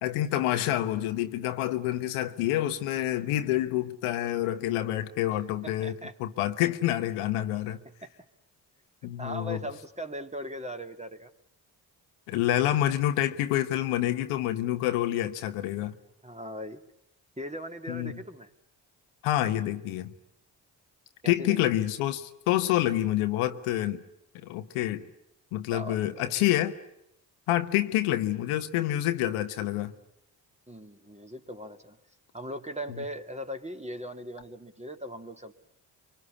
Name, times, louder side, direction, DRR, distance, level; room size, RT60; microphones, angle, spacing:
voice 1, 0.0-5.9 6.2-7.8 9.0-9.6 12.3-16.0 17.9-18.2 19.2-20.1 21.3-24.0 24.4-25.1 25.5-26.7 27.5-29.9, left 13 dB, 85° left, 9 dB, 1.2 m, -27 dB
voice 2, 5.6-6.1 7.8-8.1 9.2-11.3 15.8-15.9 16.2-16.8 17.4-18.5 21.2-21.6 25.7-26.3 30.7-32.0 32.3-35.5, equal, 15° right, 6 dB, 2.4 m, -39 dB
24.5 x 23.5 x 9.7 m, 0.77 s
hypercardioid pair, 40°, 50 cm